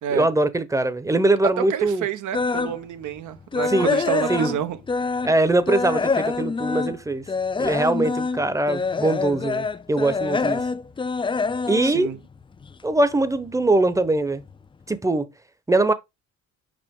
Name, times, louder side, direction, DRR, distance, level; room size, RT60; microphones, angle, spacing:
voice 1, 0.1-2.1 3.7-3.9 4.3-4.5 5.2-7.2 7.6-10.6 11.7-12.1 12.8-14.4 14.9-15.3 15.7-15.9, right 2 dB, 10° right, 0.8 m, -22 dB
voice 2, 1.6-4.8 11.8-12.2, right 10 dB, 80° right, 1.0 m, -28 dB
sound 1, 2.3-2.8 3.2-5.4 5.7-12.9 13.2-13.5 14.0-14.1 14.5-14.6, left 4 dB, 15° left, 0.4 m, -25 dB
5.4 x 5.1 x 3.6 m
cardioid pair, 90°, 30 cm